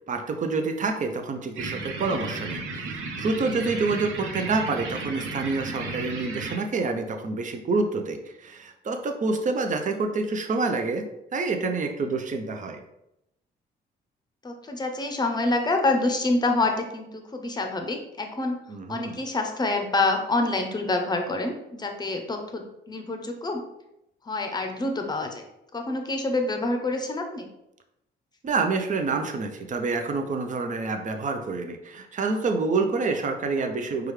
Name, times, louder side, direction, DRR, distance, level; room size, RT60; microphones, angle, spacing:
voice 1, 0.1-11.1 11.3-12.8 18.7-19.2 28.4-34.1, right 3 dB, 40° right, 5 dB, 0.6 m, -27 dB
sound 1, 1.6-6.6, right 3 dB, 85° right, 0.9 m, -34 dB
voice 2, 14.4-18.6 18.9-23.6 24.3-25.4 25.7-27.5, left 2 dB, 20° left, 4 dB, 0.7 m, -27 dB
4.9 x 2.3 x 3.2 m, 0.85 s
cardioid pair, 90°, 20 cm